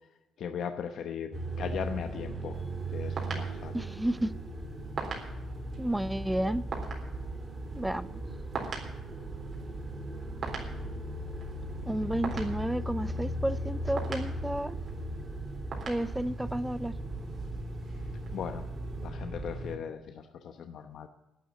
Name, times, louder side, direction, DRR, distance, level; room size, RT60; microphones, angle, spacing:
voice 1, 0.4-2.6 2.9-3.9 18.3-18.7 19.0-21.1, left 7 dB, 70° left, 7 dB, 0.8 m, -38 dB
sound 1, 1.3-19.8, right 1 dB, 25° right, 3.3 m, -37 dB
sound 2, 2.5-19.1, right 4 dB, 55° right, 3.8 m, -44 dB
voice 2, 3.7-4.3 5.8-6.6 7.7-8.2 11.9-14.7 15.9-16.9, right 1 dB, 5° right, 16 dB, 0.6 m, -31 dB
11.5 x 9.3 x 9.0 m, 1.1 s
cardioid pair, 90°, 0 cm